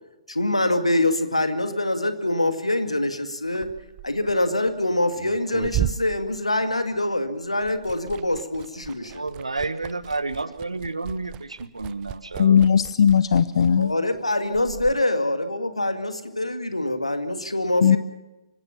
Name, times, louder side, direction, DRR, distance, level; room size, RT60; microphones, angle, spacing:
voice 1, 0.3-3.7 4.0-9.2 12.5-12.6 13.8-18.0, left 1 dB, 85° left, 2.2 m, -25 dB
Liquid, 3.5-7.2 7.4-15.0, right 13 dB, 25° right, 0.7 m, -36 dB
voice 2, 9.0-12.7, right 3 dB, 80° right, 1.3 m, -31 dB
voice 3, 12.4-13.9 17.8-18.0, left 7 dB, 55° left, 0.6 m, -17 dB
25.0 x 16.0 x 7.2 m
figure-of-eight pair, 120°, 3 cm